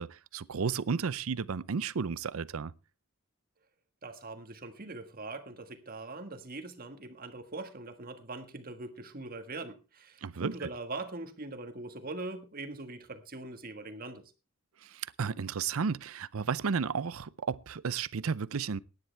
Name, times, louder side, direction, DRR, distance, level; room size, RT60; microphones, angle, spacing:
voice 1, 0.0-2.7 10.2-10.7 14.8-18.8, right 5 dB, 75° right, 0.6 m, -33 dB
voice 2, 4.0-14.2, right 2 dB, 45° right, 1.6 m, -42 dB
17.0 x 10.5 x 3.4 m
head